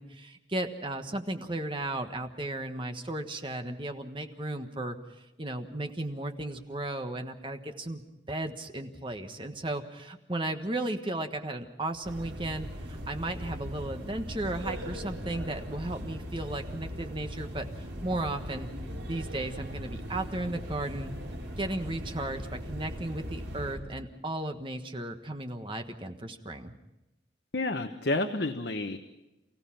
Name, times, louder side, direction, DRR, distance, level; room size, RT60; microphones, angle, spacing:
voice 1, 0.0-8.0 8.3-18.7 19.1-21.1 21.6-26.7, right 1 dB, 25° right, 6 dB, 1.4 m, -35 dB
sound 1, 12.0-23.8, equal, 70° right, 5.5 m, -39 dB
voice 2, 27.5-29.0, left 2 dB, 60° left, 6 dB, 1.1 m, -30 dB
29.0 x 16.5 x 5.9 m, 0.99 s
head